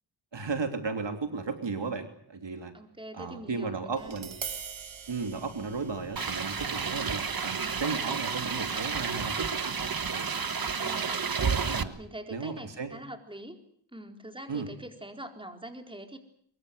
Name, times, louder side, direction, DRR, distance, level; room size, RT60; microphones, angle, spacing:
voice 1, 0.3-2.7 3.1-4.4 5.1-9.7 10.1-10.3 10.8-11.1 11.4-12.0 12.3-13.0 14.5-14.7, right 4 dB, 65° right, 7 dB, 3.0 m, -35 dB
voice 2, 2.7-4.2 5.2-5.5 10.8-11.4 12.0-13.6 13.9-16.2, right 1 dB, 10° right, 5 dB, 4.2 m, -44 dB
Tap, 4.0-10.1, right 6 dB, 85° right, 2.4 m, -45 dB
sound 1, 6.2-11.8, right 5 dB, 50° right, 1.5 m, -31 dB
24.0 x 22.5 x 7.9 m, 0.64 s
wide cardioid pair, 85°, 46 cm